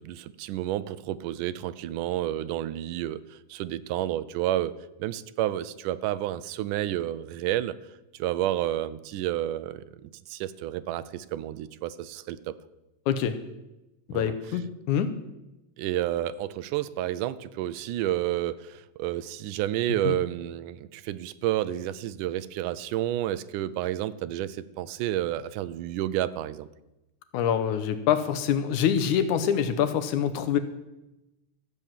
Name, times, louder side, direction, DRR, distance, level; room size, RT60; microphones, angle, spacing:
voice 1, 0.0-7.8 8.2-12.5 14.1-14.3 15.8-26.7, right 13 dB, 85° right, 15 dB, 2.1 m, -30 dB
voice 2, 13.1-13.4 14.1-15.1 20.0-20.2 27.3-30.6, left 8 dB, 80° left, 11 dB, 2.3 m, -25 dB
13.5 x 8.0 x 7.3 m, 0.98 s
omnidirectional pair, 3.6 m